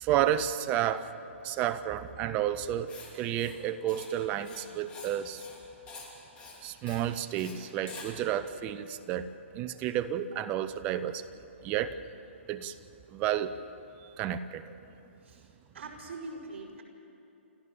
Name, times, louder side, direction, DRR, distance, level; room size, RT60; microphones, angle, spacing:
voice 1, 0.0-1.1 1.4-5.4 6.6-9.3 9.5-11.2 11.6-12.0 12.5-12.7 13.1-13.5 14.2-14.6, right 11 dB, 20° right, 12 dB, 0.6 m, -31 dB
Writing, 2.9-3.1 3.4-3.6 3.9-4.1 4.4-5.1 5.4-5.6 5.9-6.1 6.4-6.6 6.9-7.0 7.4-7.5 7.9-8.1, left 4 dB, 15° left, 2.9 m, -47 dB
voice 2, 15.7-16.8, right 3 dB, 55° right, 0 dB, 5.3 m, -42 dB
29.5 x 14.0 x 6.9 m, 2.8 s
hypercardioid pair, 155°, 7 cm